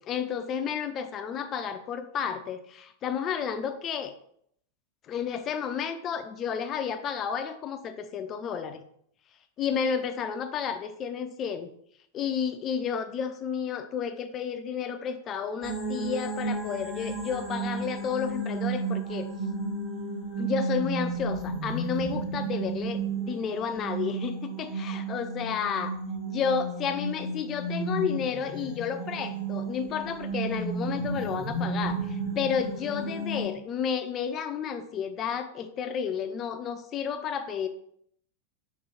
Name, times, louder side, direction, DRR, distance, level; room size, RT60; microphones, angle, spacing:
voice 1, 0.0-4.1 5.1-8.8 9.6-11.7 12.1-19.3 20.4-26.0 26.3-37.7, left 7 dB, 30° left, 9 dB, 0.4 m, -31 dB
sound 1, 15.6-33.5, right 3 dB, 15° right, 1.0 m, -32 dB
3.7 x 2.5 x 3.3 m, 0.69 s
figure-of-eight pair, 90°, 0 cm